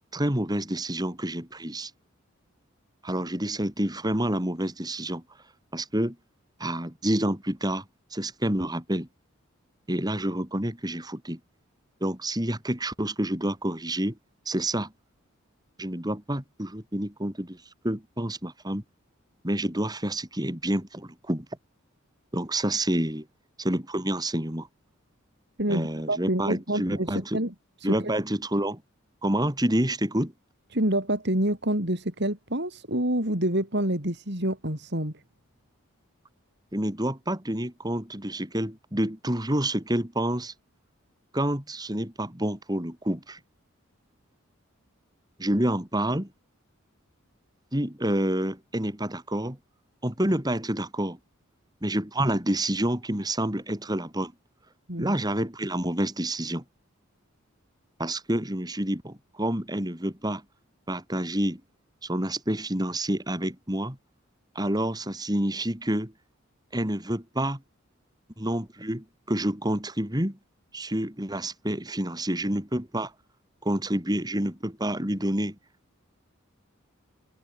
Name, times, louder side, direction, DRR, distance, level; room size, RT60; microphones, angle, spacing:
voice 1, 0.1-1.9 3.0-5.2 5.7-6.2 6.6-7.8 8.1-9.1 9.9-11.4 12.0-14.2 14.5-14.9 15.8-17.6 17.8-18.8 19.4-21.5 22.3-23.3 23.6-24.7 25.7-27.4 27.8-28.8 29.2-30.3 36.7-40.5 41.3-43.4 45.4-46.3 47.7-49.6 50.0-51.2 51.8-54.3 55.0-56.6 58.0-60.4 60.9-61.6 62.0-64.0 64.5-66.1 66.7-67.6 68.4-70.4 70.7-73.1 73.6-75.6, right 1 dB, 20° right, 4.0 m, -28 dB
voice 2, 25.6-27.5 27.8-28.1 30.7-35.1 54.9-55.2, right 1 dB, 55° right, 6.9 m, -27 dB
open air
head